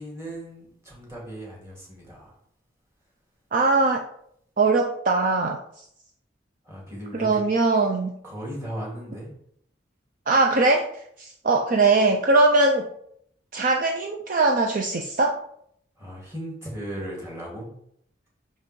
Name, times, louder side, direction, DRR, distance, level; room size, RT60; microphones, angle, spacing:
voice 1, 0.0-2.4 6.6-7.4 8.2-9.3 16.0-17.7, right 1 dB, 15° right, -4 dB, 2.1 m, -37 dB
voice 2, 3.5-4.0 4.6-5.6 7.1-8.1 10.3-12.9 13.5-15.4, right 3 dB, 45° right, 2 dB, 0.5 m, -21 dB
6.0 x 5.4 x 3.1 m, 0.69 s
head